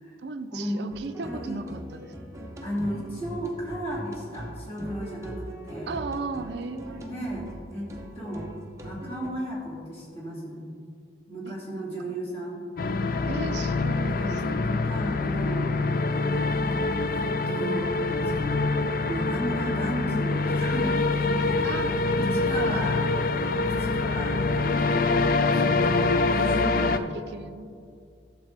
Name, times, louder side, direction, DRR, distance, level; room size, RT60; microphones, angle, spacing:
voice 1, 0.2-2.1 5.9-7.4 11.5-12.3 13.3-14.3 21.6-22.2 22.6-23.1 23.7-23.9 27.0-27.7, right 3 dB, 70° right, 9 dB, 0.5 m, -37 dB
sound 1, 0.9-9.3, right 1 dB, 15° right, 0.7 m, -41 dB
voice 2, 1.2-1.6 2.6-5.9 6.8-7.9 8.2-8.5 8.8-10.7 11.3-12.6 13.2-13.3 14.2-15.7 17.1-18.7 19.0-21.1 21.4-21.9 22.1-23.0 23.6-25.2 25.5-27.0, equal, 30° left, -6 dB, 2.4 m, -34 dB
sound 2, 12.8-27.0, left 3 dB, 50° left, 0.4 m, -25 dB
12.0 x 7.4 x 3.3 m, 2.4 s
head